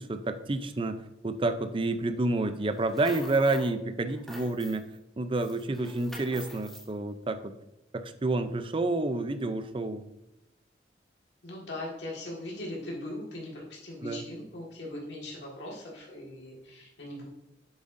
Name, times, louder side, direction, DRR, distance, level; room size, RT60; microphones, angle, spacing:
voice 1, 0.0-4.9 5.2-7.5 7.9-10.0 14.0-14.2, right 2 dB, 30° right, 10 dB, 0.5 m, -29 dB
sound 1, 2.7-3.7 4.1-5.0 5.4-6.9, left 1 dB, ahead, 1.2 m, -46 dB
voice 2, 11.4-17.3, left 1 dB, 90° left, -3 dB, 1.7 m, -40 dB
7.8 x 7.2 x 2.6 m, 0.90 s
head